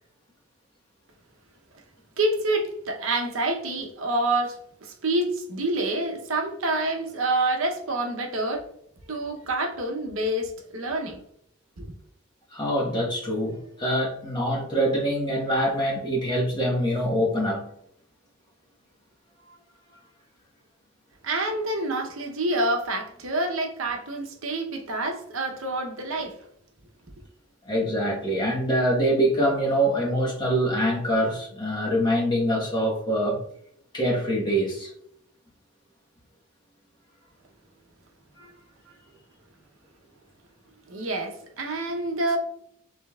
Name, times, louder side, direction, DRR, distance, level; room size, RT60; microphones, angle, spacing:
voice 1, 2.2-8.7 9.1-11.2 11.8-11.9 21.2-26.4 40.9-42.4, right 2 dB, 65° right, 0.8 m, -27 dB
voice 2, 12.5-17.7 27.6-33.4 33.9-34.9 38.4-38.5, equal, 20° left, 1.2 m, -24 dB
5.1 x 3.4 x 2.3 m
head